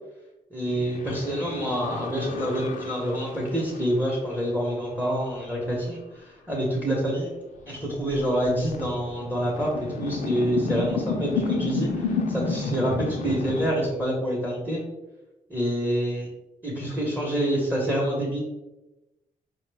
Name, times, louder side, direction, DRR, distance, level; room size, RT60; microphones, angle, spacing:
voice 1, 0.5-7.3 7.7-14.8 15.5-16.3 16.6-18.4, equal, 10° right, -4 dB, 0.8 m, -27 dB
sound 1, 0.7-4.5 5.7-5.8 7.6-7.7 8.0-13.7, left 4 dB, 70° left, 0.5 m, -31 dB
4.6 x 2.1 x 3.3 m, 1.0 s
cardioid pair, 125°, 14 cm